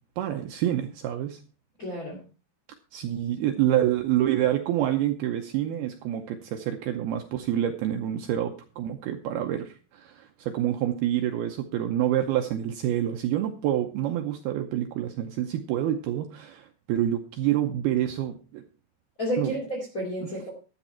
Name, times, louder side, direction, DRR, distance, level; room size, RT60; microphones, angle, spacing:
voice 1, 0.2-1.4 2.9-18.6 19.4-19.5 20.2-20.3, right 12 dB, 85° right, 5 dB, 2.2 m, -27 dB
voice 2, 1.8-2.2 19.2-20.5, equal, 25° left, -3 dB, 2.1 m, -31 dB
12.5 x 9.1 x 4.3 m, 0.36 s
omnidirectional pair, 5.5 m